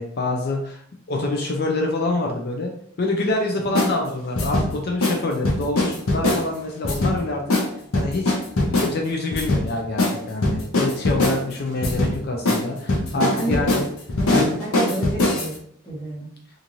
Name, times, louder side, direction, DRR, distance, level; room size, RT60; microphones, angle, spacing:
voice 1, 0.0-2.7 3.0-7.4 7.9-8.4 8.8-13.8 14.3-14.6, left 2 dB, 50° left, 1 dB, 0.4 m, -26 dB
sound 1, 3.8-3.9 4.4-4.7 5.0-5.2 5.4-6.4 6.8-7.2 7.5-7.7 7.9-8.9 9.3-9.6 10.0-10.2 10.4-11.4 11.8-12.1 12.5-12.6 12.9-15.5, left 2 dB, 90° left, 0.7 m, -21 dB
voice 2, 13.1-13.8 14.2-15.6 15.8-16.3, right 1 dB, 20° left, -8 dB, 1.1 m, -30 dB
2.9 x 2.5 x 2.6 m, 0.64 s
head